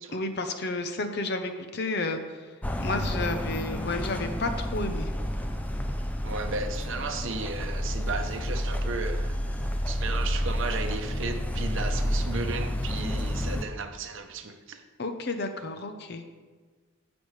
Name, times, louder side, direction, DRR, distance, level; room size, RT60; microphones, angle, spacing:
voice 1, 0.1-2.2 2.8-5.1 15.0-16.2, left 2 dB, 50° left, 7 dB, 0.7 m, -31 dB
sound 1, 2.6-13.7, equal, 5° left, 0.3 m, -30 dB
voice 2, 6.2-9.3 9.9-14.8, right 4 dB, 60° right, 6 dB, 0.8 m, -34 dB
14.5 x 5.2 x 3.2 m, 1.4 s
head